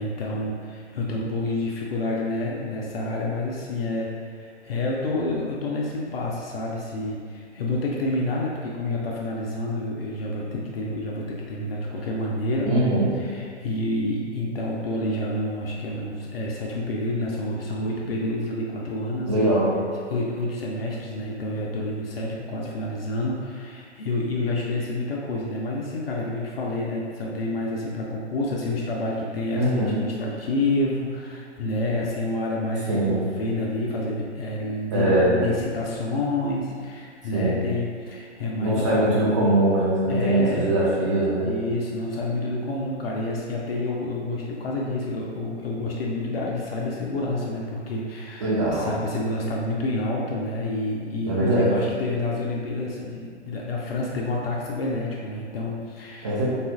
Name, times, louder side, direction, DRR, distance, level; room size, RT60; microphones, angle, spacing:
voice 1, 0.0-12.9 13.2-19.6 20.1-39.2 40.1-40.8 41.4-56.5, left 2 dB, 55° left, -3 dB, 0.4 m, -28 dB
voice 2, 12.7-13.1 19.3-19.7 29.5-30.0 32.9-33.2 34.9-35.3 37.3-37.6 38.6-41.5 48.4-48.9 51.2-51.7 56.2-56.5, right 1 dB, 25° right, -6 dB, 0.4 m, -22 dB
2.7 x 2.4 x 2.4 m, 2.1 s
figure-of-eight pair, 120°, 37 cm